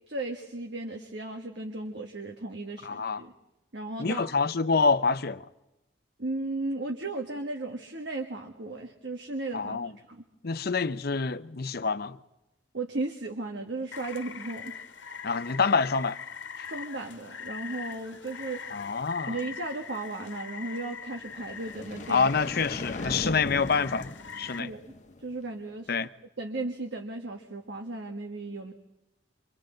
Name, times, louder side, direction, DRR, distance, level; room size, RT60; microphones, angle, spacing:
voice 1, 0.1-3.3 3.7-4.3 6.2-10.2 12.7-14.7 16.6-18.6 19.2-22.3 24.5-24.9 25.2-25.9 26.4-28.7, right 2 dB, 65° right, 1.6 m, -35 dB
voice 2, 2.8-3.2 4.0-5.4 9.5-9.9 10.4-12.2 15.2-16.2 18.7-19.4 22.1-24.7 25.9-26.1, left 4 dB, 55° left, 0.7 m, -27 dB
Rain, 13.9-24.6, left 6 dB, 75° left, 1.3 m, -42 dB
sound 1, 21.1-25.4, left 2 dB, 40° left, 1.1 m, -39 dB
27.5 x 25.0 x 3.9 m
head